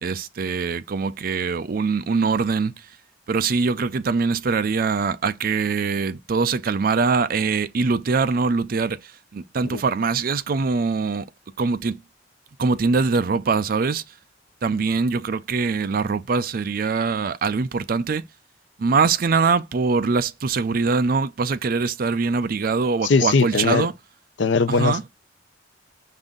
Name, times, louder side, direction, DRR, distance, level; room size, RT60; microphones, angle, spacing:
voice 1, 0.0-2.7 3.3-9.0 9.3-11.3 11.6-12.0 12.6-14.0 14.6-18.2 18.8-23.9 24.7-25.0, right 4 dB, 45° right, 0.4 m, -23 dB
voice 2, 23.0-23.9 24.4-25.1, left 4 dB, 70° left, 0.6 m, -20 dB
5.4 x 2.6 x 3.6 m
head